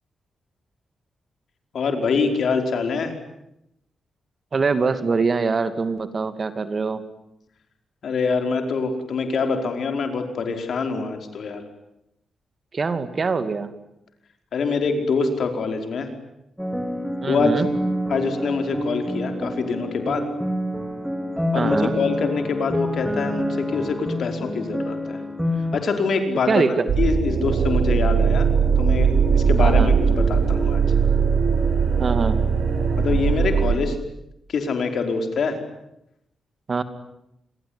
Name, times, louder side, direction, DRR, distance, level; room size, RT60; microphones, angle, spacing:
voice 1, 1.7-3.1 8.0-11.6 14.5-16.1 17.3-17.5 18.1-20.3 21.5-25.2 25.7-26.6 27.0-28.5 28.8-30.8 33.0-34.0 34.5-35.6, left 4 dB, 65° left, 6 dB, 5.2 m, -25 dB
voice 2, 4.5-7.0 12.7-13.7 17.2-17.7 21.5-21.9 26.5-26.9 29.6-29.9 32.0-32.4 36.7-36.8, right 4 dB, 45° right, 11 dB, 2.6 m, -23 dB
sound 1, 16.6-25.8, equal, ahead, 4.2 m, -27 dB
sound 2, 26.9-33.8, right 6 dB, 70° right, 5.2 m, -19 dB
28.0 x 21.5 x 9.9 m, 0.82 s
cardioid pair, 90°, 0 cm